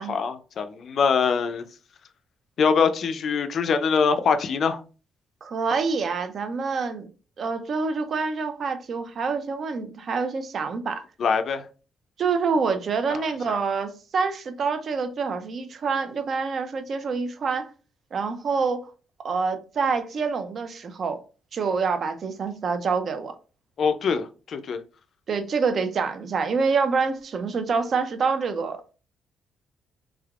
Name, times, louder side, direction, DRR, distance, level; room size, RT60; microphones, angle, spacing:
voice 1, 0.0-1.6 2.6-4.8 11.2-11.6 13.1-13.2 13.5-13.6 23.8-24.8, left 5 dB, 55° left, 0.4 m, -23 dB
voice 2, 5.4-7.1 7.4-11.0 12.2-17.7 18.1-18.9 19.2-21.2 21.5-23.3 25.3-28.9, right 5 dB, 50° right, 0.5 m, -26 dB
3.6 x 3.3 x 2.4 m
cardioid pair, 120°, 0 cm